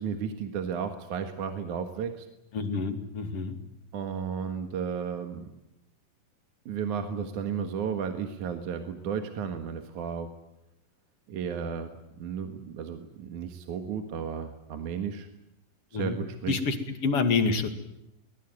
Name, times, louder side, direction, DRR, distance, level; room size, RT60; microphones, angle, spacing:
voice 1, 0.0-2.3 3.9-5.5 6.7-10.3 11.3-11.9 12.2-15.3 15.9-16.5, right 7 dB, 60° right, 6 dB, 2.9 m, -33 dB
voice 2, 2.5-3.6 15.9-16.2 16.5-16.8 17.0-17.7, left 4 dB, 45° left, 7 dB, 3.0 m, -27 dB
23.5 x 21.0 x 9.5 m, 0.86 s
omnidirectional pair, 4.1 m